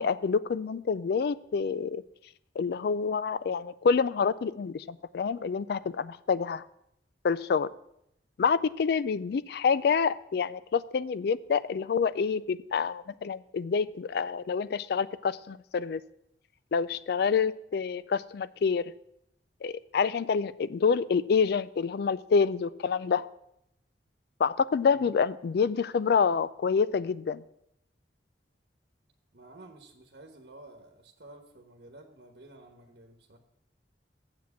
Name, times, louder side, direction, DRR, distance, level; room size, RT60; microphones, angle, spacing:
voice 1, 0.0-2.0 2.6-6.6 7.2-7.7 8.4-16.0 16.7-18.9 19.6-23.2 24.4-27.4, left 5 dB, 60° left, 17 dB, 0.3 m, -27 dB
voice 2, 29.3-33.4, right 2 dB, 65° right, 3 dB, 1.1 m, -52 dB
7.5 x 7.3 x 5.8 m, 0.78 s
head